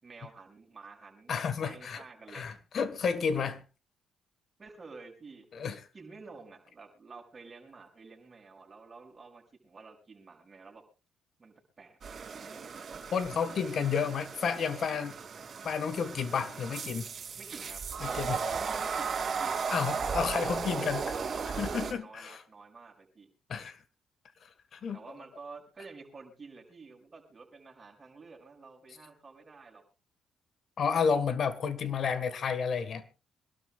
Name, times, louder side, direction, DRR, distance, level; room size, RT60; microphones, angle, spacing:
voice 1, 0.0-2.4 4.6-5.5 5.9-10.8 11.4-12.8 17.4-19.8 20.5-23.3 24.9-29.8 31.6-31.8, right 4 dB, 30° right, 6.3 m, -50 dB
voice 2, 1.3-2.0 2.3-3.6 5.5-5.8 13.1-15.1 15.6-17.1 18.0-18.4 19.7-21.0 21.6-22.4 23.5-23.8 24.7-25.0 30.8-33.0, left 6 dB, 55° left, 1.6 m, -31 dB
sound 1, 12.0-21.9, right 5 dB, 45° right, 3.5 m, -36 dB
26.0 x 12.5 x 2.4 m
cardioid pair, 90°, 0 cm